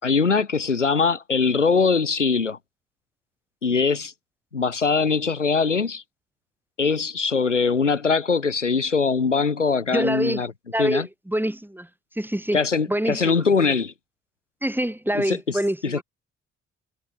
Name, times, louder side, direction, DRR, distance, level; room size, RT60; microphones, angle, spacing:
voice 1, 0.0-2.6 3.6-4.1 4.5-6.0 6.8-10.5 10.8-11.1 12.5-13.9 15.1-15.4 15.8-16.0, left 5 dB, 90° left, 2.6 m, -22 dB
voice 2, 9.9-10.4 10.7-11.9 12.2-12.6 12.9-13.4 14.6-16.0, right 1 dB, 5° right, 4.7 m, -26 dB
figure-of-eight pair, 40°, 35 cm